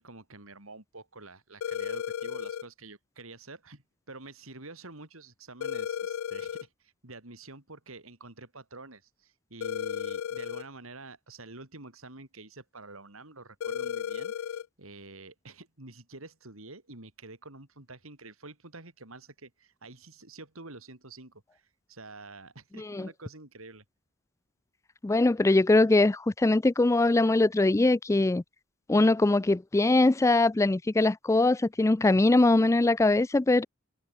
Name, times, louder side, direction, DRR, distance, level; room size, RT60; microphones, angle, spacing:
voice 1, 0.0-23.8, right 3 dB, 75° right, 4.1 m, -48 dB
sound 1, 1.6-2.6 5.6-6.6 9.6-10.6 13.6-14.6, left 8 dB, 85° left, 0.4 m, -34 dB
voice 2, 22.8-23.1 25.0-28.4 28.9-33.6, left 2 dB, 15° left, 0.3 m, -22 dB
head